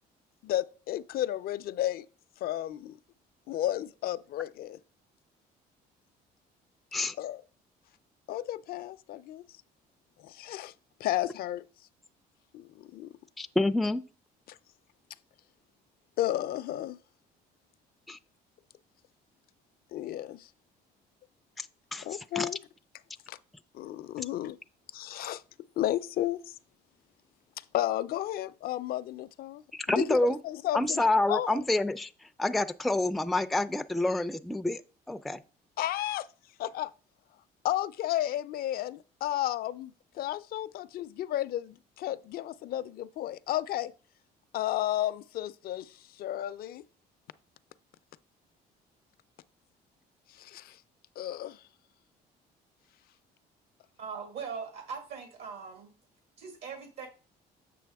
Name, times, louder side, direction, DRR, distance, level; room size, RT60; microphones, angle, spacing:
voice 1, 0.4-2.1 2.4-3.0 3.5-4.8 7.2-7.4 8.3-9.4 10.2-10.7 11.0-11.6 12.5-13.1 16.2-17.0 19.9-20.5 22.0-22.6 23.3-23.4 23.7-24.6 24.9-25.4 25.8-26.4 27.7-29.6 29.9-31.6 35.8-36.3 36.6-36.9 37.6-43.9 44.5-46.8 50.4-50.8 51.2-51.6, left 13 dB, 65° left, 0.5 m, -33 dB
voice 2, 13.4-14.0 18.1-18.2 21.6-21.7 21.9-22.5 29.7-30.4 30.7-34.8 35.1-35.4, left 2 dB, ahead, 0.3 m, -28 dB
voice 3, 54.0-55.9 56.4-57.1, right 6 dB, 75° right, 1.6 m, -40 dB
7.6 x 5.9 x 3.5 m
cardioid pair, 110°, 17 cm